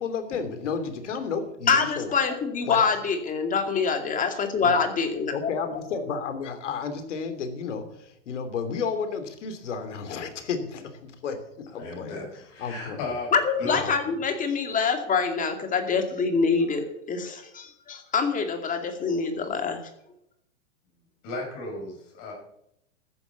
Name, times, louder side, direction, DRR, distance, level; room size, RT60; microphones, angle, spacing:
voice 1, 0.0-2.1 2.7-2.9 4.6-4.8 5.3-12.2 12.6-13.0 13.7-13.9, left 5 dB, 75° left, 9 dB, 3.1 m, -32 dB
voice 2, 1.7-5.3 13.3-19.8, left 5 dB, 20° left, 6 dB, 2.4 m, -25 dB
voice 3, 11.8-13.3 13.6-13.8 14.1-14.2 21.2-22.3, left 2 dB, 45° left, -1 dB, 6.6 m, -35 dB
14.0 x 10.5 x 7.2 m, 0.78 s
hypercardioid pair, 120°, 37 cm